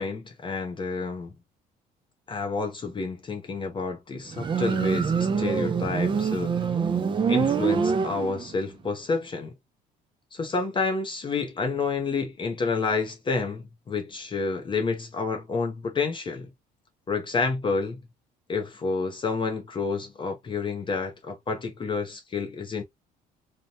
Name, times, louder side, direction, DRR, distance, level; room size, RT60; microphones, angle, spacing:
voice 1, 0.0-1.3 2.3-6.6 7.3-9.5 10.3-16.5 17.1-18.0 18.5-22.8, left 4 dB, 30° left, 0.5 m, -29 dB
Motorcycle, 4.3-8.7, right 6 dB, 30° right, 0.5 m, -25 dB
2.8 x 2.1 x 2.7 m
cardioid pair, 110°, 17 cm